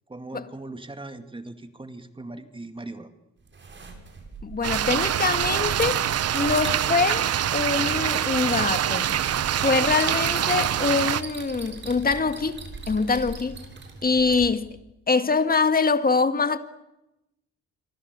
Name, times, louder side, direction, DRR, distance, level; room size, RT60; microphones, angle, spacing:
voice 1, 0.1-3.1, right 2 dB, 15° right, 2.3 m, -39 dB
sound 1, 3.5-14.5, right 3 dB, 40° right, 7.7 m, -39 dB
voice 2, 4.4-6.0 6.3-9.1 9.6-13.6 14.0-14.7 15.1-16.6, left 4 dB, 30° left, 1.9 m, -24 dB
sound 2, 4.6-11.2, right 10 dB, 55° right, 1.0 m, -25 dB
27.0 x 24.5 x 8.3 m
cardioid pair, 90°, 30 cm